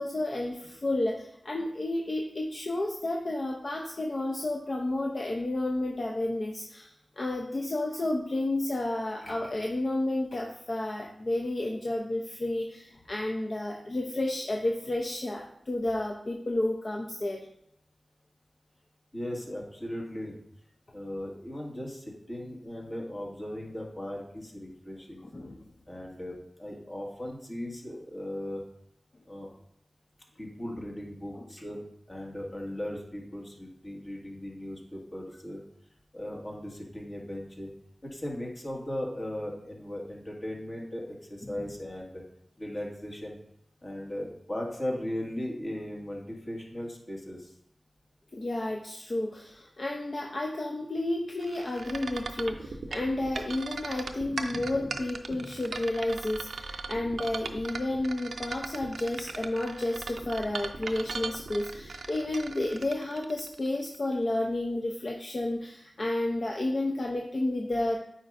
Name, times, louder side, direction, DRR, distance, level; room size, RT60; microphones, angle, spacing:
voice 1, 0.0-17.4 25.3-25.6 29.4-29.6 31.3-31.5 48.3-68.0, left 1 dB, 55° left, 0 dB, 0.7 m, -31 dB
voice 2, 19.1-20.3 20.9-25.2 25.9-28.6 29.3-29.5 30.4-31.8 32.1-35.6 36.1-37.7 38.0-42.2 42.6-43.4 43.8-47.5, left 1 dB, 40° left, -2 dB, 1.8 m, -37 dB
sound 1, 51.4-64.0, right 4 dB, 90° right, 0.4 m, -38 dB
8.8 x 4.5 x 2.6 m, 0.73 s
cardioid pair, 45°, 0 cm